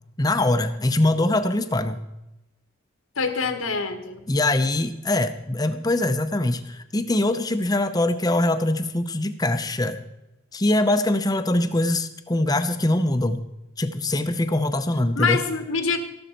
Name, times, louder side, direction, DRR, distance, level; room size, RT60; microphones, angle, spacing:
voice 1, 0.2-2.0 4.3-10.0 10.5-13.4 13.8-15.4, left 1 dB, 20° left, 10 dB, 0.7 m, -23 dB
voice 2, 3.2-4.2 15.1-16.0, left 4 dB, 85° left, 7 dB, 1.5 m, -25 dB
14.0 x 12.0 x 4.4 m, 0.93 s
head